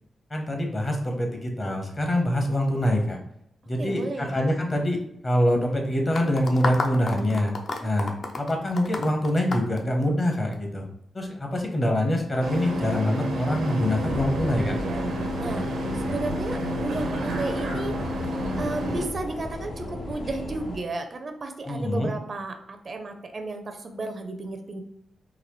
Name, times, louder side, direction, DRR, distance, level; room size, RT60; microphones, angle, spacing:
voice 1, 0.3-3.2 3.7-7.5 7.8-10.9 11.1-14.7 21.6-22.1, left 1 dB, 30° left, 2 dB, 0.8 m, -25 dB
voice 2, 3.8-4.4 7.7-8.3 15.4-15.7 15.9-18.0 18.6-24.8, right 2 dB, 40° right, 6 dB, 0.4 m, -33 dB
sound 1, 6.1-10.5, left 3 dB, 55° left, 0.5 m, -31 dB
sound 2, 12.4-19.1, equal, 85° right, 0.6 m, -29 dB
sound 3, 14.0-20.8, left 1 dB, 80° left, 1.1 m, -36 dB
4.0 x 2.7 x 3.0 m, 0.74 s
wide cardioid pair, 120°, 0 cm